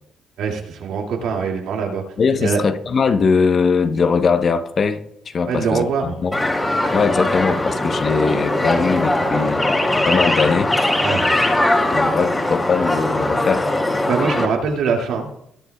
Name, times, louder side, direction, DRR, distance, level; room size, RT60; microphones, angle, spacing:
voice 1, 0.4-2.0 2.4-2.6 5.5-6.0 11.0-11.3 14.1-15.3, right 5 dB, 85° right, 2.3 m, -22 dB
voice 2, 2.2-5.9 6.2-6.3 6.9-9.8 10.0-10.7 11.9-13.7, left 5 dB, 50° left, 0.9 m, -20 dB
sound 1, 6.3-14.5, left 1 dB, 15° left, 2.7 m, -20 dB
20.0 x 8.8 x 2.3 m
cardioid pair, 90°, 0 cm